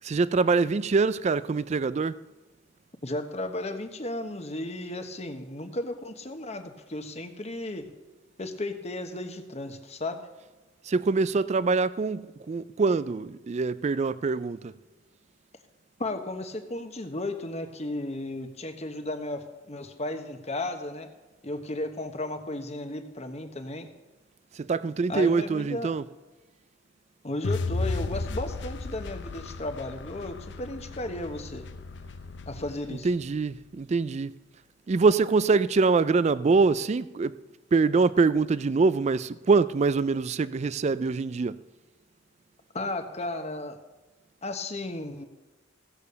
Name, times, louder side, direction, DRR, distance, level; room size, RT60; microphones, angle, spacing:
voice 1, 0.0-2.2 10.9-14.7 24.6-26.1 32.9-34.3 34.9-37.4 37.7-41.6, right 4 dB, 35° right, 0.3 m, -24 dB
voice 2, 3.0-7.9 8.4-10.2 16.0-21.1 21.4-23.9 25.1-25.9 27.2-31.6 32.5-33.1 42.7-43.8 44.4-45.2, left 2 dB, 35° left, 1.1 m, -34 dB
sound 1, 27.4-33.6, left 3 dB, 65° left, 0.6 m, -35 dB
15.5 x 6.9 x 6.8 m
head